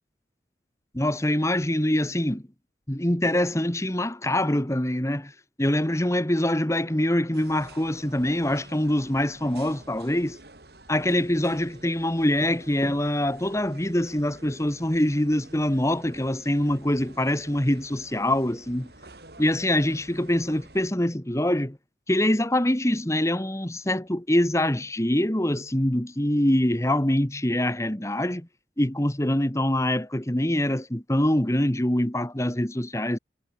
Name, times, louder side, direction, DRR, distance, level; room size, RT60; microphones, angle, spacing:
voice 1, 0.9-2.4 2.9-5.3 5.6-10.4 10.9-18.9 19.4-21.8 22.1-28.5 28.8-33.2, left 1 dB, 15° left, 1.6 m, -24 dB
sound 1, 7.3-20.9, right 2 dB, 60° right, 5.2 m, -50 dB
head